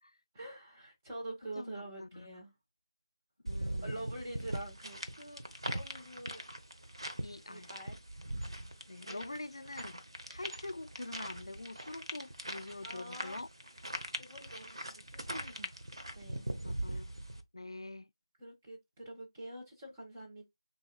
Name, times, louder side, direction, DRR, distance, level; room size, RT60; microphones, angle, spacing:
voice 1, 0.3-2.5 3.8-5.4 5.7-6.4 7.5-8.0 9.0-9.3 12.8-13.4 14.2-15.7 16.0-16.5 18.4-20.4, right 1 dB, 15° right, 1.6 m, -46 dB
voice 2, 1.6-2.3 3.4-4.1 7.2-7.7 8.9-10.0 10.3-13.5 16.6-17.1 17.5-18.1, left 2 dB, 70° left, 0.3 m, -45 dB
sound 1, 3.5-17.4, right 1 dB, 70° right, 1.0 m, -41 dB
6.3 x 2.8 x 2.3 m
figure-of-eight pair, 165°, 3 cm